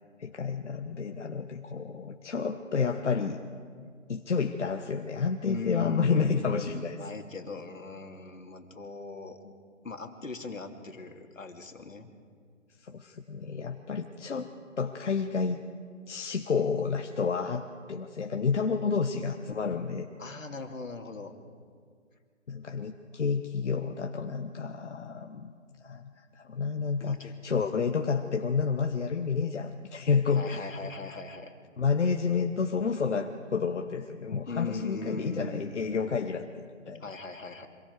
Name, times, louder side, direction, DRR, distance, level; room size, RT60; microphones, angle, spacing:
voice 1, 0.2-3.4 4.1-7.0 12.8-14.5 14.8-15.6 16.1-20.1 22.5-25.5 25.8-30.7 31.8-37.0, left 5 dB, 65° left, 4 dB, 1.3 m, -30 dB
voice 2, 5.4-9.5 9.8-12.1 20.2-21.4 27.0-27.3 30.3-31.5 34.5-35.8 37.0-37.7, left 3 dB, 80° left, 4 dB, 2.7 m, -39 dB
26.5 x 22.0 x 4.7 m, 2.1 s
figure-of-eight pair, 155°, 39 cm